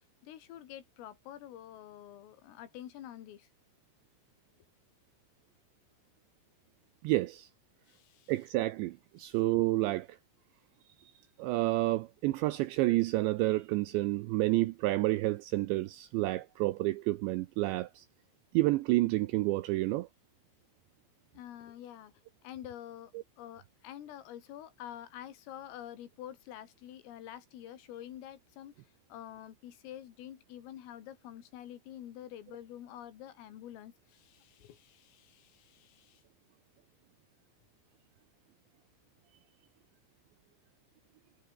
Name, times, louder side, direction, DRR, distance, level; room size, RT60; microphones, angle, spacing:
voice 1, 0.2-3.5 7.9-8.3 9.2-9.4 21.3-22.1 22.4-23.1 23.4-28.7 29.1-36.2, left 11 dB, 80° left, 4.9 m, -47 dB
voice 2, 7.0-7.5 8.3-10.1 11.4-18.0 18.5-20.1, right 18 dB, 85° right, 2.6 m, -29 dB
omnidirectional pair, 6.0 m